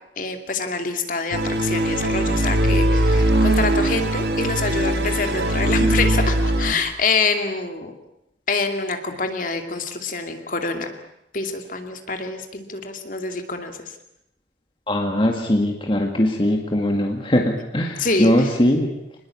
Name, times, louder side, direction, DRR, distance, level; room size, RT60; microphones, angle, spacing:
voice 1, 0.2-7.9 8.5-11.0 11.3-13.8 18.0-18.5, left 4 dB, 45° left, 5 dB, 2.6 m, -26 dB
sound 1, 1.3-6.7, right 1 dB, 65° right, 2.2 m, -20 dB
voice 2, 14.9-18.9, left 1 dB, 25° left, 2 dB, 2.0 m, -20 dB
25.5 x 20.5 x 8.6 m, 0.82 s
head